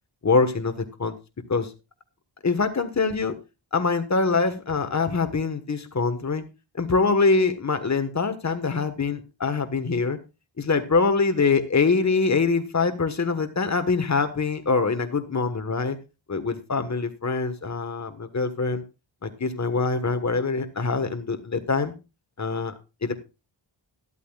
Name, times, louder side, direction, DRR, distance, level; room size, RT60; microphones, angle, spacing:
voice 1, 0.2-1.1 1.5-1.7 2.4-3.3 3.7-6.4 6.7-10.2 10.6-16.0 16.3-18.8 19.2-21.9 22.4-22.7 23.0-23.2, left 4 dB, 35° left, 8 dB, 1.4 m, -24 dB
12.5 x 12.5 x 2.4 m, 0.28 s
wide cardioid pair, 90°, 48 cm